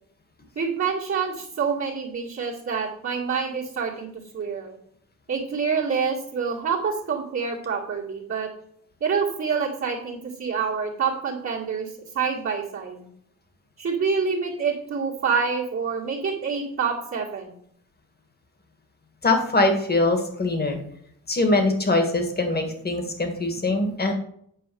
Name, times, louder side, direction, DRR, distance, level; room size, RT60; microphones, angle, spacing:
voice 1, 0.6-4.1 4.3-4.8 5.3-8.5 9.0-13.0 13.8-17.5, right 5 dB, 45° right, -6 dB, 2.2 m, -27 dB
voice 2, 19.2-20.8 21.3-24.1, left 2 dB, 30° left, 5 dB, 1.9 m, -22 dB
9.0 x 4.6 x 7.0 m, 0.69 s
cardioid pair, 110°, 32 cm